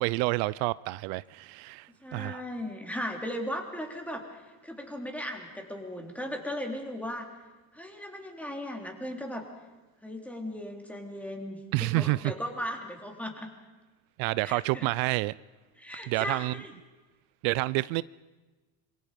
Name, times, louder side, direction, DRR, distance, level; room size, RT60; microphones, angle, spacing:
voice 1, 0.0-2.4 11.7-12.2 14.2-15.3 16.1-16.5 17.4-18.0, right 21 dB, 80° right, 0.6 m, -28 dB
voice 2, 2.0-7.3 7.7-9.4 10.0-13.5 14.4-14.9 15.8-16.7, equal, 5° left, 3.5 m, -37 dB
26.5 x 23.0 x 5.2 m
cardioid pair, 125°, 47 cm